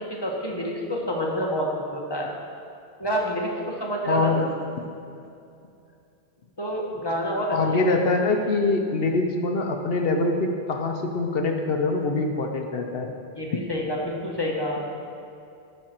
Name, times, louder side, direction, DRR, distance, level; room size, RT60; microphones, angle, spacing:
voice 1, 0.1-2.3 3.0-4.3 6.6-7.6 7.9-8.0 13.4-14.8, equal, 25° left, -2 dB, 1.3 m, -28 dB
voice 2, 4.1-4.5 4.8-4.9 7.5-13.1, left 3 dB, 65° left, 4 dB, 0.9 m, -24 dB
13.5 x 5.5 x 4.4 m, 2.5 s
omnidirectional pair, 1.1 m